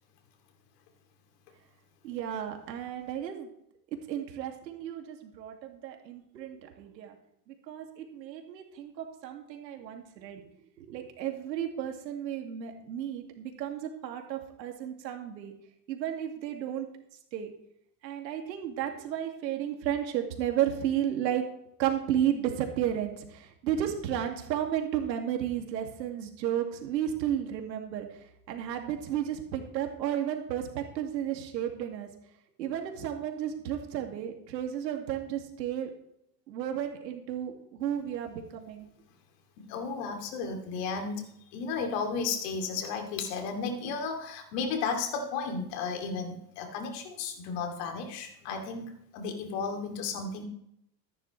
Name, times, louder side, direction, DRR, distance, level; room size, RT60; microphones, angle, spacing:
voice 1, 2.0-3.5 3.9-7.2 7.5-10.4 10.8-15.5 15.9-16.9 17.3-17.5 18.0-21.4 21.8-28.2 28.5-32.1 32.6-35.9 36.5-38.9, right 10 dB, 90° right, 3 dB, 2.4 m, -33 dB
voice 2, 39.6-41.2 41.5-50.5, left 5 dB, 70° left, 4 dB, 2.8 m, -34 dB
14.0 x 10.5 x 3.3 m, 0.74 s
hypercardioid pair, 100°, 49 cm